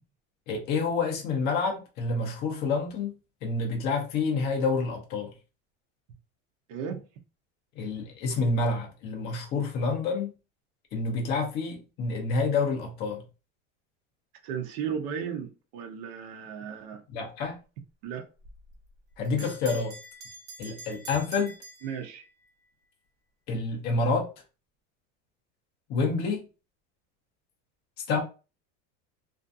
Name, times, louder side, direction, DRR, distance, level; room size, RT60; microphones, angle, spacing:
voice 1, 0.5-3.1 3.4-5.3 7.8-10.3 10.9-13.2 17.1-17.6 19.2-20.0 20.6-21.5 23.5-24.3 25.9-26.5 28.1-28.2, left 4 dB, 30° left, 0.5 m, -28 dB
voice 2, 6.7-7.1 14.4-17.0 18.0-18.3 21.8-22.2, right 7 dB, 45° right, 0.5 m, -35 dB
Bell, 18.4-22.5, right 2 dB, 85° right, 1.0 m, -46 dB
2.4 x 2.2 x 2.5 m
supercardioid pair, 170°, 34 cm